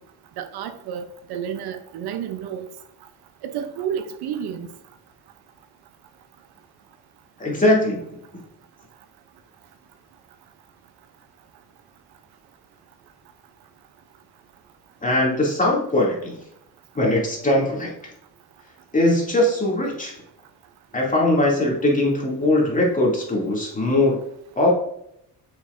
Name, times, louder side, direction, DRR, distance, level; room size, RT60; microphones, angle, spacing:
voice 1, 0.4-1.0 1.3-2.7 3.4-4.7, right 8 dB, 85° right, 8 dB, 0.8 m, -30 dB
voice 2, 7.4-8.0 15.0-16.4 16.9-17.9 18.9-20.2 20.9-24.2 24.6-24.7, left 1 dB, 20° left, -3 dB, 2.5 m, -20 dB
7.3 x 6.0 x 2.6 m, 0.75 s
cardioid pair, 95°, 38 cm